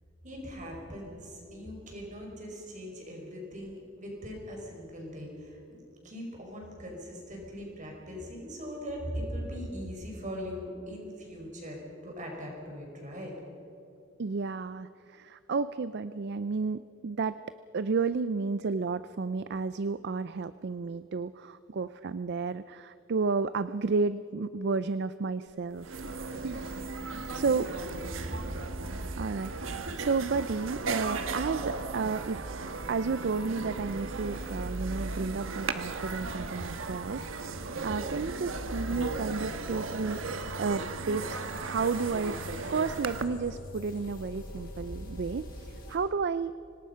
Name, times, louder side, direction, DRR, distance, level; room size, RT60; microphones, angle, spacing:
voice 1, 0.2-13.3 27.2-27.5 28.2-28.5, equal, 35° right, 0 dB, 5.3 m, -40 dB
voice 2, 14.2-17.4 17.7-26.0 26.3-26.6 27.0-27.7 29.2-32.5 32.9-37.2 37.8-42.4 42.7-46.5, right 4 dB, 55° right, 14 dB, 0.4 m, -32 dB
sound 1, 25.5-25.6 25.8-43.2, right 3 dB, 70° right, 1.2 m, -36 dB
sound 2, 38.6-46.0, left 1 dB, 45° left, 5.9 m, -43 dB
25.5 x 19.0 x 5.7 m, 2.9 s
head